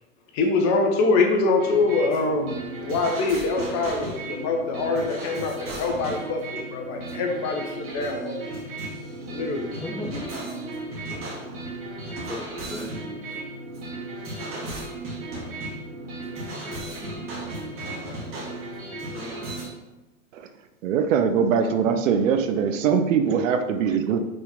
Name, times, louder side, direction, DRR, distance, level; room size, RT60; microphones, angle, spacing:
voice 1, 0.3-8.6 9.3-9.7, left 3 dB, 40° left, 2 dB, 1.5 m, -24 dB
sound 1, 1.6-19.7, right 2 dB, 30° right, 2.3 m, -35 dB
voice 2, 9.8-11.2 12.3-13.5 16.3-17.2 19.1-19.7 21.8-22.0, left 2 dB, 10° left, 1 dB, 1.0 m, -39 dB
voice 3, 20.8-24.2, right 7 dB, 65° right, 8 dB, 0.8 m, -22 dB
5.4 x 4.6 x 5.2 m, 1.1 s
hypercardioid pair, 110°, 41 cm